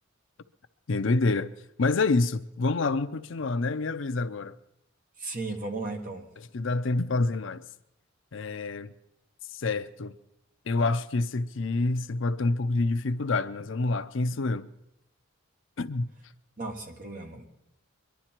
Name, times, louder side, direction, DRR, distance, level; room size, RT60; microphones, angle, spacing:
voice 1, 0.9-1.5 1.8-4.6 6.5-7.6 8.3-8.9 9.5-10.1 10.7-14.7 15.8-16.1, left 3 dB, 65° left, 0.6 m, -27 dB
voice 2, 5.2-6.3 16.6-17.5, right 3 dB, 40° right, 1.6 m, -35 dB
23.5 x 11.5 x 4.5 m
head